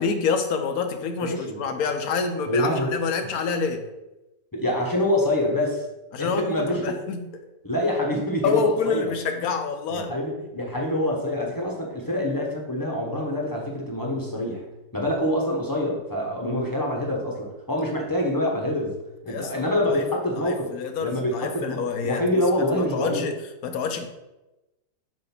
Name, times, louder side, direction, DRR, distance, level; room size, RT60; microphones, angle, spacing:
voice 1, 0.0-3.8 6.1-7.3 8.4-10.1 19.3-20.1 20.4-22.2 22.7-23.4 23.6-24.1, left 5 dB, 65° left, 7 dB, 1.1 m, -27 dB
voice 2, 1.2-1.6 2.5-2.9 4.5-5.8 6.2-6.9 7.6-9.1 9.9-14.7 14.9-19.0 19.2-20.7 21.0-23.2, left 1 dB, 15° left, -1 dB, 0.8 m, -26 dB
7.5 x 2.6 x 5.8 m, 1.0 s
omnidirectional pair, 1.8 m